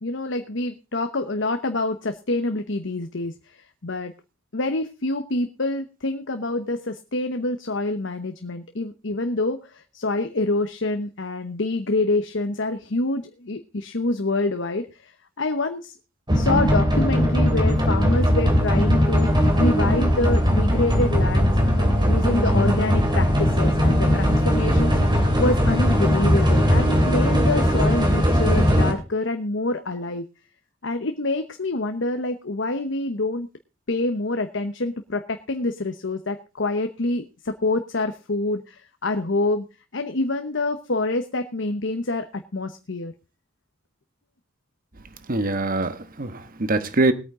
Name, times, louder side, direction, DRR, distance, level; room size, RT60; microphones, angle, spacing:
voice 1, 0.0-4.1 4.5-15.1 15.4-15.9 16.3-25.0 25.4-30.3 30.8-33.5 33.9-39.7 39.9-43.1, left 2 dB, 70° left, 1.0 m, -26 dB
sound 1, 16.3-28.9, equal, 25° right, 3.0 m, -19 dB
voice 2, 45.3-47.1, right 2 dB, 45° right, 1.2 m, -23 dB
20.5 x 8.9 x 3.8 m
head